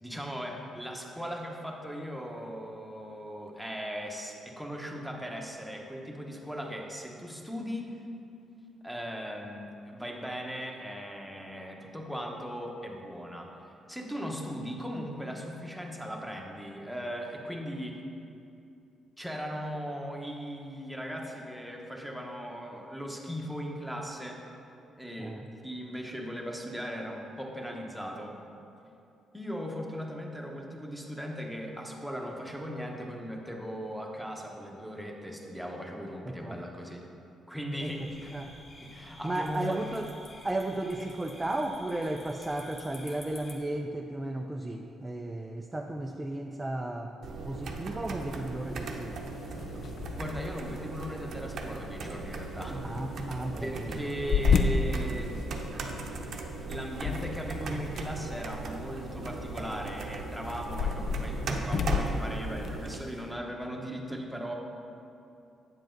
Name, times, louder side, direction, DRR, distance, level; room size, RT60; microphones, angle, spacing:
voice 1, 0.0-8.0 8.8-13.5 13.9-18.0 19.2-24.4 25.0-28.4 29.3-37.1 37.5-38.3 38.8-39.8 50.2-53.0 53.6-55.5 56.7-64.5, equal, ahead, 0 dB, 1.1 m, -38 dB
voice 2, 25.2-25.5 36.3-36.6 37.8-38.0 38.3-38.5 39.2-40.1 40.4-47.1 47.4-49.2 52.8-54.0, right 1 dB, 15° right, 2 dB, 0.4 m, -34 dB
sound 1, 37.8-43.6, left 1 dB, 25° left, 1.3 m, -50 dB
sound 2, 47.2-63.0, right 3 dB, 65° right, 0.8 m, -38 dB
sound 3, 48.5-63.3, left 5 dB, 55° left, 0.5 m, -34 dB
8.8 x 7.4 x 3.9 m, 2.7 s
cardioid pair, 90°, 0 cm